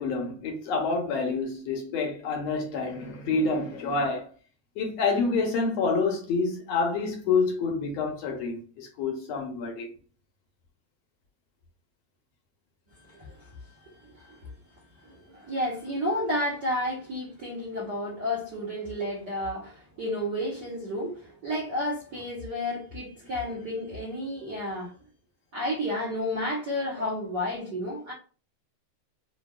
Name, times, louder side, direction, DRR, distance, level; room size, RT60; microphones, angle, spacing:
voice 1, 0.0-4.3 4.8-9.9, left 4 dB, 75° left, 1.7 m, -28 dB
voice 2, 13.0-14.5 15.0-24.9 25.5-28.1, left 1 dB, 65° right, 1.0 m, -32 dB
5.0 x 2.3 x 2.2 m
omnidirectional pair, 3.4 m